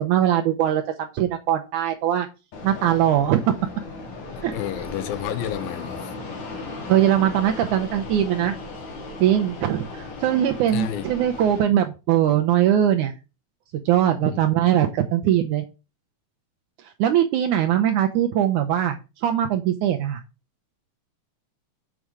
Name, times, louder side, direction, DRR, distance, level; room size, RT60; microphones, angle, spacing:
voice 1, 0.0-2.3 2.6-3.5 4.4-4.5 6.9-8.5 9.2-13.1 13.9-15.7 17.0-19.0 19.2-20.2, right 11 dB, 75° right, 1.9 m, -21 dB
Fixed-wing aircraft airplane, 2.5-11.6, left 3 dB, 55° left, 2.7 m, -36 dB
voice 2, 4.3-6.1 10.7-11.1 14.2-14.4, left 11 dB, 90° left, 2.5 m, -31 dB
7.6 x 5.2 x 4.7 m
omnidirectional pair, 4.2 m